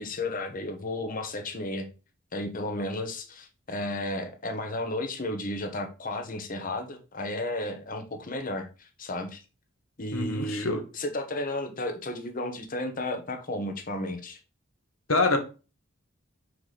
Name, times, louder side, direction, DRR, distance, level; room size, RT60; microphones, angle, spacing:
voice 1, 0.0-1.9 2.3-9.4 10.0-10.7 10.9-14.4, left 1 dB, 40° left, 1.0 m, -33 dB
voice 2, 10.1-10.8 15.1-15.4, left 3 dB, 80° left, 1.3 m, -25 dB
4.9 x 4.7 x 4.1 m
head